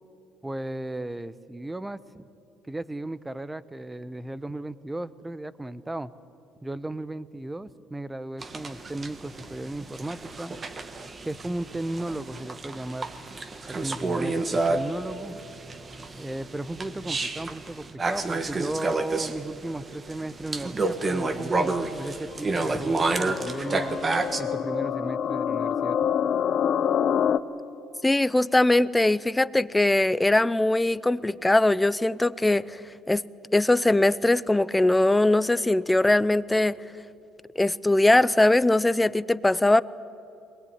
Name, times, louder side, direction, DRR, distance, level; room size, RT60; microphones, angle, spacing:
voice 1, 0.4-2.2 2.6-6.1 6.6-10.6 11.2-13.2 13.7-15.4 16.2-23.9 24.4-26.1, right 1 dB, 10° right, 16 dB, 0.9 m, -35 dB
sound 1, 8.4-24.4, right 3 dB, 30° right, 1.6 m, -30 dB
sound 2, 22.3-27.4, left 8 dB, 50° left, 0.8 m, -27 dB
voice 2, 28.0-32.8 33.1-33.2 33.5-36.8 37.6-39.8, left 2 dB, 10° left, 17 dB, 0.6 m, -21 dB
22.0 x 20.5 x 9.6 m, 2.8 s
supercardioid pair, 90°, 0 cm